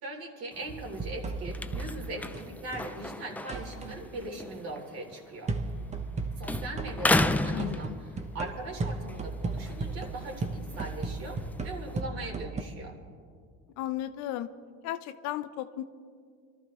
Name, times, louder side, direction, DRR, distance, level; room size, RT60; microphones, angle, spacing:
voice 1, 0.0-5.5 6.4-7.9 8.3-12.9, right 2 dB, 55° right, 1 dB, 3.4 m, -40 dB
sound 1, 0.5-6.2 6.4-8.5 8.9-12.0, left 2 dB, 5° left, 0.4 m, -34 dB
sound 2, 0.7-3.0 3.5-4.0 5.5-12.6, right 3 dB, 25° right, 1.0 m, -35 dB
voice 2, 7.5-8.0 13.8-14.5 14.8-15.8, left 13 dB, 65° left, 12 dB, 0.7 m, -35 dB
25.5 x 13.0 x 3.1 m, 2.1 s
supercardioid pair, 105°, 30 cm